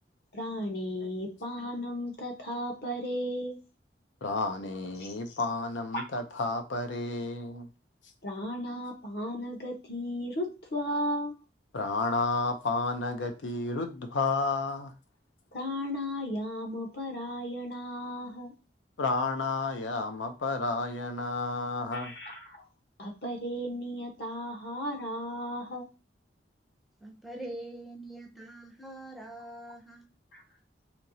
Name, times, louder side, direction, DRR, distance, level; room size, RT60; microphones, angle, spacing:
voice 1, 0.3-3.6 5.0-5.1 5.9-6.0 8.2-11.4 15.5-18.5 21.9-22.6 23.0-25.9 30.3-30.4, equal, 60° left, 1.0 m, -35 dB
voice 2, 4.2-7.7 11.7-14.9 19.0-22.1, left 3 dB, 85° left, 0.6 m, -31 dB
voice 3, 27.0-30.2, right 1 dB, ahead, 0.5 m, -44 dB
4.4 x 2.8 x 2.7 m
head